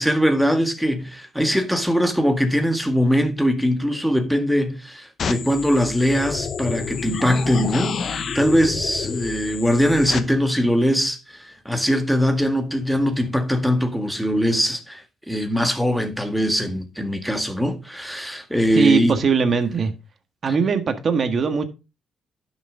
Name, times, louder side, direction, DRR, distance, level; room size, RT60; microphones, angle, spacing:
voice 1, 0.0-19.1, equal, ahead, 1.9 m, -21 dB
sound 1, 5.2-10.2, left 6 dB, 50° left, 0.9 m, -29 dB
voice 2, 18.7-19.9 20.4-21.7, right 5 dB, 45° right, 1.6 m, -20 dB
11.0 x 6.5 x 3.9 m
cardioid pair, 90°, 0 cm